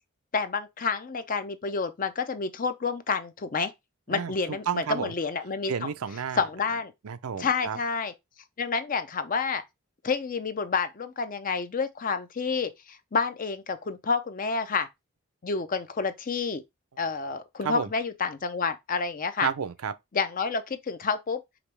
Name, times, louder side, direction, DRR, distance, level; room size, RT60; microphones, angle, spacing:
voice 1, 0.3-3.7 4.1-5.9 6.4-6.9 7.4-8.1 8.6-9.6 10.0-14.9 15.4-16.6 17.0-19.5 20.1-21.4, left 5 dB, 40° left, 0.5 m, -29 dB
voice 2, 4.1-5.1 5.7-6.4 7.0-7.8 17.6-17.9 19.4-19.9, right 7 dB, 85° right, 0.5 m, -31 dB
5.1 x 3.0 x 3.2 m
head